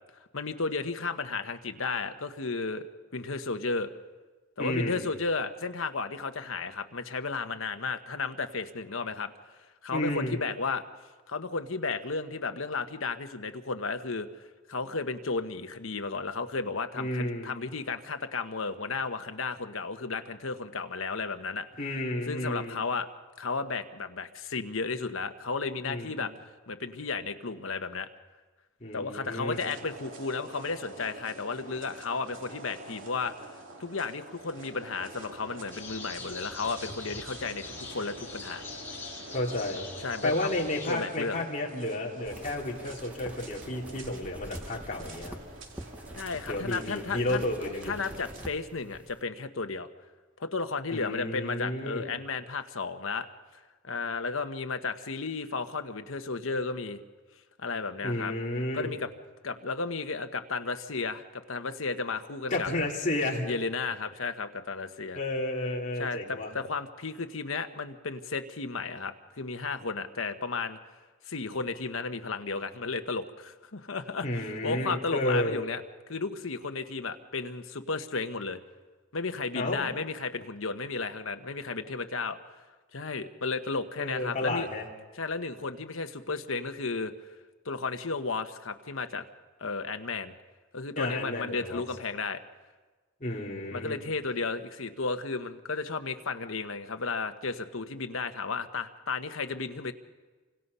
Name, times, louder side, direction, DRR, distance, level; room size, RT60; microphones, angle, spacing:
voice 1, 0.3-2.9 3.1-3.9 4.6-9.3 9.8-10.8 11.3-14.3 14.7-21.6 22.3-23.1 23.4-26.3 26.7-28.1 28.9-33.5 33.8-38.6 40.0-40.5 40.9-41.4 46.2-47.4 47.9-49.9 50.4-53.3 53.8-57.0 57.6-58.3 58.7-59.1 59.4-62.7 63.4-65.2 66.0-70.8 71.3-75.8 76.1-78.6 79.1-82.4 82.9-84.7 85.1-87.1 87.6-89.2 89.6-90.3 90.7-92.4 93.7-99.9, left 4 dB, 85° left, 8 dB, 1.2 m, -33 dB
voice 2, 4.6-5.0 9.9-10.4 16.9-17.5 21.8-22.8 25.8-26.3 28.8-29.6 39.3-39.9 40.2-45.4 46.5-47.9 50.9-52.1 58.0-58.9 62.5-63.5 65.1-66.5 74.2-75.6 79.5-79.9 84.0-84.9 91.0-91.8 93.2-94.0, left 1 dB, 35° left, -2 dB, 3.5 m, -32 dB
sound 1, 29.5-48.5, right 2 dB, 75° right, 2.6 m, -47 dB
sound 2, 35.7-40.9, left 4 dB, 10° left, 5.0 m, -43 dB
sound 3, 42.3-49.2, right 1 dB, 5° right, 0.9 m, -46 dB
29.0 x 25.5 x 5.6 m, 1.3 s
head